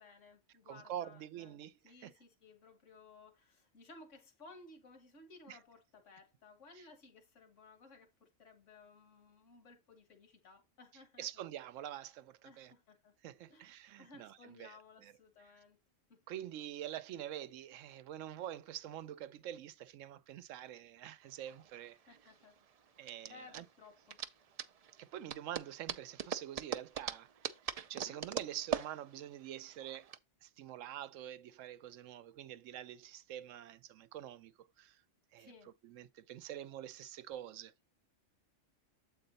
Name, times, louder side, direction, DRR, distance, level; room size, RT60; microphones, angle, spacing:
voice 1, 0.0-11.4 12.4-13.1 13.5-15.8 16.1-16.4 21.9-22.6 22.9-24.2 27.9-28.2 35.3-35.7, left 3 dB, 75° left, 1.8 m, -59 dB
voice 2, 0.7-1.7 2.0-2.1 5.5-5.6 6.8-6.9 11.2-12.7 13.2-15.1 16.3-22.2 23.0-23.6 25.0-27.3 27.9-30.1 30.4-35.0 35.3-35.5 35.8-37.7, right 11 dB, 90° right, 1.0 m, -46 dB
sound 1, 21.3-30.2, right 7 dB, 75° right, 0.3 m, -42 dB
7.8 x 4.2 x 4.0 m
omnidirectional pair, 1.3 m